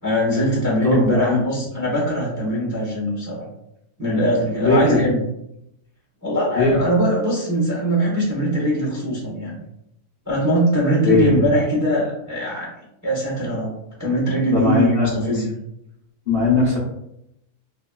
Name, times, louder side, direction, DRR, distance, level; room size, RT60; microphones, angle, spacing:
voice 1, 0.0-3.5 4.0-5.2 6.2-9.6 10.3-12.7 13.0-13.7 14.0-15.5, equal, 15° right, -5 dB, 0.8 m, -21 dB
voice 2, 0.8-1.4 4.6-5.0 6.5-6.8 11.0-11.4 14.5-15.1 16.3-16.8, left 3 dB, 50° left, -8 dB, 0.8 m, -19 dB
2.9 x 2.7 x 2.3 m, 0.80 s
omnidirectional pair, 1.7 m